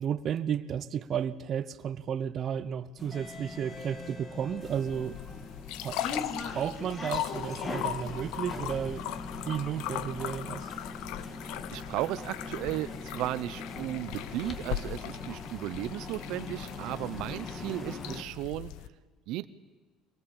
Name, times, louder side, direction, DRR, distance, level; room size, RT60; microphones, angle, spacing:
voice 1, 0.0-5.2 5.8-6.0 6.5-9.1 9.5-10.7, right 8 dB, 35° right, 0.8 m, -33 dB
sound 1, 3.0-18.2, left 3 dB, 20° left, 1.9 m, -41 dB
sound 2, 4.7-18.9, left 13 dB, 70° left, 0.8 m, -39 dB
voice 2, 11.7-18.7 19.3-19.5, right 15 dB, 60° right, 0.7 m, -35 dB
24.0 x 19.5 x 8.8 m
cardioid pair, 175°, 0 cm